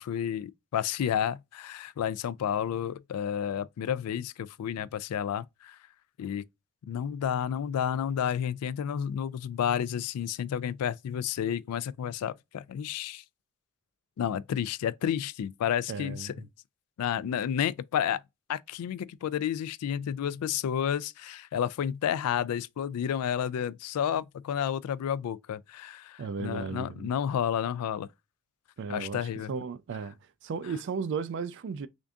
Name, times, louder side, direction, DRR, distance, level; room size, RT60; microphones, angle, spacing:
voice 1, 0.0-5.8 6.2-6.4 6.9-13.2 14.2-16.3 17.0-18.2 18.5-28.1 28.9-29.5, left 9 dB, 80° left, 0.3 m, -31 dB
voice 2, 15.9-16.5 26.2-27.1 28.8-30.2 30.4-31.9, right 5 dB, 55° right, 0.3 m, -35 dB
3.6 x 2.6 x 3.3 m
head